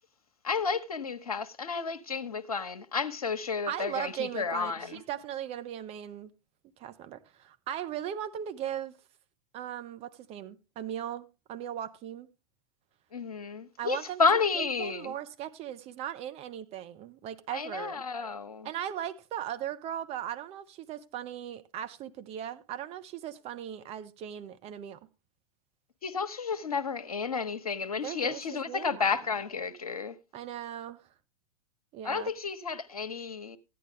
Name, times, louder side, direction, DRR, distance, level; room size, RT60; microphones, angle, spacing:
voice 1, 0.4-5.0 13.1-15.1 17.5-18.7 26.0-30.2 32.0-33.6, left 5 dB, 75° left, 1.1 m, -31 dB
voice 2, 3.7-6.3 6.8-8.9 9.5-12.3 13.8-14.2 14.6-18.0 18.6-25.0 27.9-29.1 30.3-31.0 31.9-32.3, right 10 dB, 35° right, 1.0 m, -38 dB
14.0 x 9.9 x 3.2 m
figure-of-eight pair, 95°, 19 cm